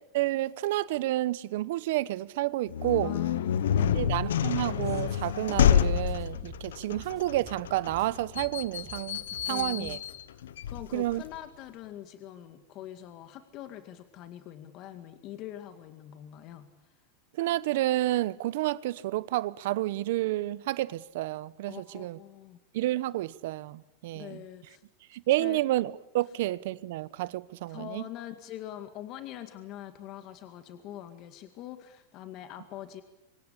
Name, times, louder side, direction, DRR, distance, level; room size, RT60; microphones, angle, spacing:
voice 1, 0.1-3.1 3.9-10.0 10.9-11.2 17.4-22.2 22.7-24.4 25.1-28.0, right 16 dB, 70° right, 1.0 m, -30 dB
sound 1, 2.7-11.4, left 9 dB, 85° left, 1.0 m, -28 dB
voice 2, 3.0-4.1 9.5-10.0 10.3-16.7 21.7-22.6 24.1-24.8 25.4-25.6 27.7-33.0, left 12 dB, 45° left, 2.1 m, -43 dB
sound 2, 4.5-10.2, right 8 dB, 35° right, 3.9 m, -51 dB
26.0 x 24.5 x 8.7 m
supercardioid pair, 125°, 0 cm